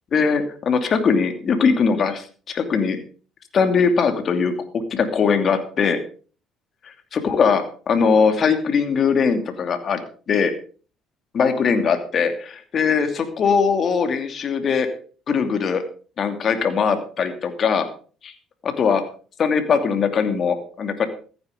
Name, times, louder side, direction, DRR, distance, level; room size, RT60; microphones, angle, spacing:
voice 1, 0.1-3.0 3.5-6.0 7.1-10.0 10.3-10.5 11.3-14.9 15.3-15.8 16.2-17.9 18.2-18.3 18.6-19.0 19.4-21.1, left 5 dB, 50° left, 8 dB, 2.7 m, -20 dB
15.0 x 9.6 x 5.2 m, 0.40 s
supercardioid pair, 70°, 0 cm